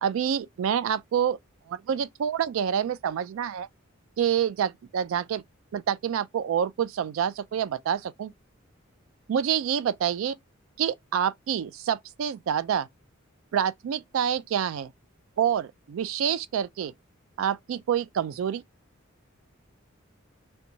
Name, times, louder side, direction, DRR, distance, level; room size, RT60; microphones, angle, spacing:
voice 1, 0.0-1.4 1.7-3.7 4.2-5.4 5.7-8.3 9.3-10.4 10.8-12.9 13.5-14.9 15.4-16.9 17.4-18.6, right 8 dB, 75° right, 0.3 m, -27 dB
2.6 x 2.2 x 2.7 m
head